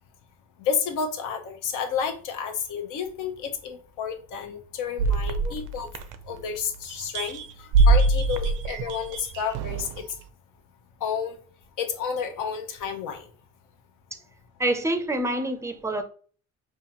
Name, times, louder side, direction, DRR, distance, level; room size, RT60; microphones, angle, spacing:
voice 1, 0.6-5.9 6.3-10.0 11.0-11.4 11.8-13.2, left 7 dB, 85° left, 0.9 m, -31 dB
sound 1, 5.0-6.6 6.9-10.0, right 3 dB, 90° right, 0.6 m, -23 dB
voice 2, 14.6-16.0, right 1 dB, 10° right, 0.5 m, -26 dB
5.5 x 2.5 x 2.9 m
cardioid pair, 160°, 30 cm